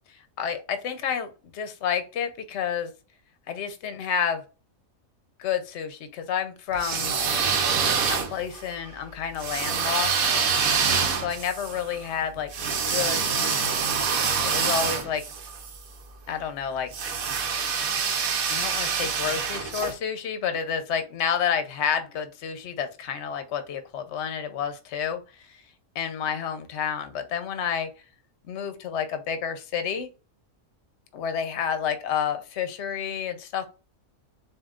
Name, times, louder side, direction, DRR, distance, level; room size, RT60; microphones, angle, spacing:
voice 1, 0.1-2.9 3.5-4.4 5.4-7.2 8.1-10.1 11.2-12.5 12.9-13.8 14.4-15.2 16.3-16.9 18.5-25.6 25.9-27.9 28.5-30.1 31.1-33.7, left 7 dB, 60° left, 9 dB, 0.9 m, -30 dB
sound 1, 6.7-8.6 9.4-15.8 16.9-19.9, right 6 dB, 80° right, 1.2 m, -26 dB
7.3 x 2.6 x 2.4 m, 0.33 s
omnidirectional pair, 1.4 m